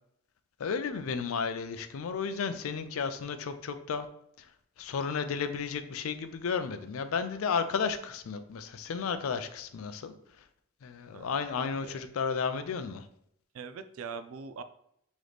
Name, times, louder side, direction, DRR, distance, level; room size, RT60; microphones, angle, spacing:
voice 1, 0.6-4.1 4.4-4.5 4.8-10.1 10.8-13.1, left 5 dB, 75° left, 10 dB, 0.4 m, -33 dB
voice 2, 11.1-12.0 13.5-14.6, right 5 dB, 75° right, 11 dB, 0.3 m, -43 dB
3.9 x 3.0 x 3.3 m, 0.74 s
head